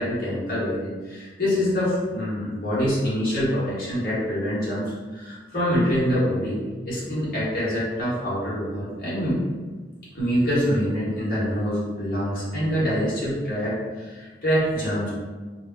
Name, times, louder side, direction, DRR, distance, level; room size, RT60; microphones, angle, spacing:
voice 1, 0.0-6.6 6.8-9.4 10.1-15.1, equal, 55° left, -9 dB, 1.1 m, -25 dB
2.2 x 2.2 x 3.4 m, 1.3 s
head